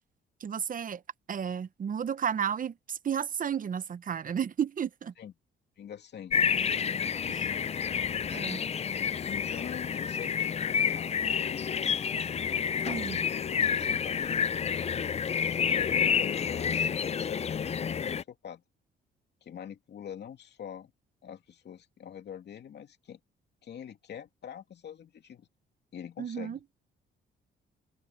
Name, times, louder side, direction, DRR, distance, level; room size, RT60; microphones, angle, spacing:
voice 1, 0.4-1.0 1.3-5.1 7.3-7.5 8.3-8.6 12.9-13.2 26.2-26.6, right 8 dB, 45° right, 0.8 m, -32 dB
voice 2, 5.8-6.4 9.3-12.2 12.9-14.8 15.5-18.6 19.4-20.9 21.2-23.2 23.6-25.5 25.9-26.6, left 9 dB, 60° left, 2.7 m, -45 dB
sound 1, 6.3-18.2, left 7 dB, 30° left, 0.5 m, -29 dB
open air
cardioid pair, 90°, 20 cm